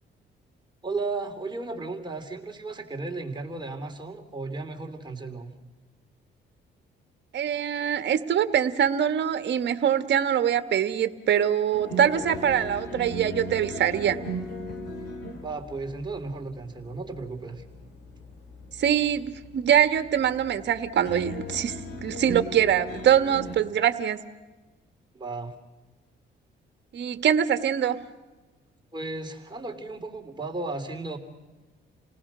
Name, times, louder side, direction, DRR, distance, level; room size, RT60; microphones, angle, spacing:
voice 1, 0.8-5.5 15.4-17.6 25.1-25.5 28.9-31.2, right 3 dB, 20° right, 2 dB, 3.6 m, -34 dB
voice 2, 7.3-14.2 18.8-24.2 26.9-28.0, right 9 dB, 60° right, 10 dB, 1.6 m, -24 dB
sound 1, 11.7-23.5, equal, 60° left, 4.6 m, -38 dB
30.0 x 19.0 x 6.3 m, 1.2 s
cardioid pair, 90°, 20 cm